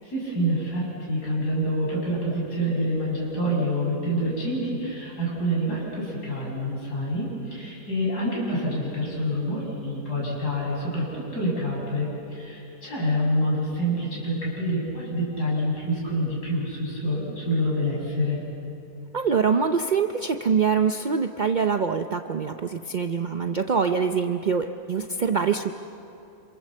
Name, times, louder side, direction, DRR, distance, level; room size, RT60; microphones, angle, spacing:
voice 1, 0.0-18.4, equal, 70° left, -5 dB, 7.8 m, -27 dB
voice 2, 19.1-25.7, right 6 dB, 60° right, 6 dB, 0.4 m, -24 dB
27.0 x 27.0 x 7.3 m, 2.8 s
omnidirectional pair, 1.8 m